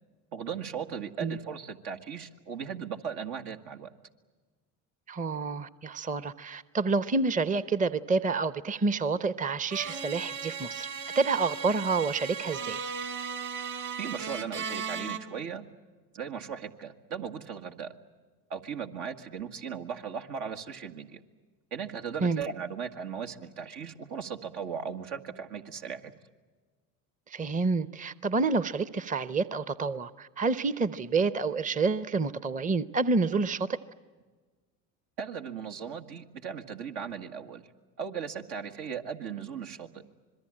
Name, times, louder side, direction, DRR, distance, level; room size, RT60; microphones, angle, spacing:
voice 1, 0.3-3.9 14.0-15.7 16.1-17.9 18.5-21.2 21.7-26.1 35.2-37.7 38.0-40.0, right 7 dB, 70° right, 5 dB, 1.9 m, -37 dB
voice 2, 5.1-10.9 11.1-12.9 22.2-22.4 27.3-33.8, right 4 dB, 20° right, 16 dB, 0.8 m, -28 dB
sound 1, 9.7-15.2, right 6 dB, 45° right, 3.1 m, -36 dB
26.0 x 22.0 x 8.8 m, 1.4 s
hypercardioid pair, 75°, 42 cm